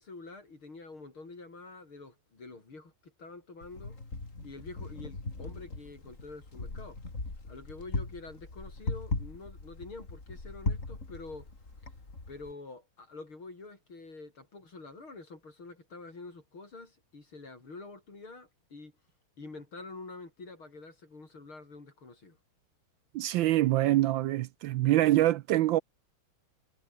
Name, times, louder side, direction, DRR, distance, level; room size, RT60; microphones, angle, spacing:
voice 1, 0.0-4.0 4.4-7.0 7.5-11.5 12.3-18.9 19.4-22.4, left 3 dB, 70° left, 6.0 m, -47 dB
Wind, 3.6-12.5, left 3 dB, 35° left, 4.3 m, -38 dB
voice 2, 23.1-25.8, right 15 dB, 75° right, 1.2 m, -25 dB
omnidirectional pair, 2.4 m